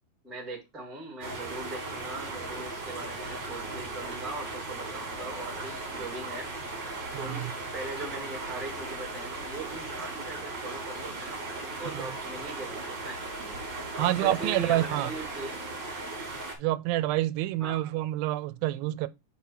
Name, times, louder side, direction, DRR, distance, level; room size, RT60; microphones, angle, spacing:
voice 1, 0.2-6.5 7.2-13.2 13.9-15.6 17.6-17.8, right 2 dB, ahead, 1.3 m, -40 dB
sound 1, 1.2-16.6, right 3 dB, 40° right, 2.0 m, -37 dB
voice 2, 7.1-7.5 11.9-12.1 14.0-15.1 16.6-19.1, right 15 dB, 90° right, 2.3 m, -28 dB
4.7 x 4.4 x 5.5 m
omnidirectional pair, 4.1 m